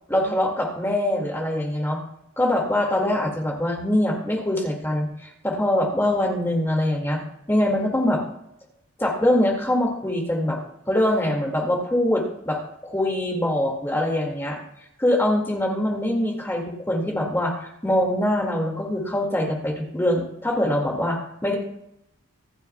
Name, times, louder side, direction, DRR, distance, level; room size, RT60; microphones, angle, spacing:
voice 1, 0.1-2.0 2.4-7.2 7.5-8.2 9.0-10.6 10.9-12.6 12.8-14.6 15.0-21.6, left 1 dB, 10° left, 0 dB, 2.1 m, -23 dB
25.5 x 8.9 x 2.3 m, 0.80 s
head